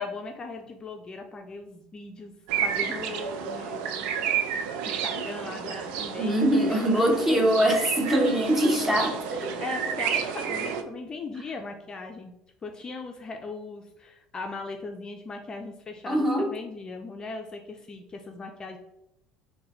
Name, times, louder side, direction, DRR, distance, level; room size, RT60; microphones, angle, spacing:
voice 1, 0.0-2.3 2.6-4.1 4.9-6.4 6.7-7.0 9.6-12.3 12.6-18.8, left 3 dB, 30° left, 4 dB, 0.5 m, -39 dB
sound 1, 2.5-10.8, right 7 dB, 75° right, 0.4 m, -31 dB
voice 2, 6.2-9.6 16.1-16.5, equal, 10° right, 2 dB, 0.9 m, -23 dB
3.8 x 2.2 x 4.2 m, 0.85 s
hypercardioid pair, 80°, 3 cm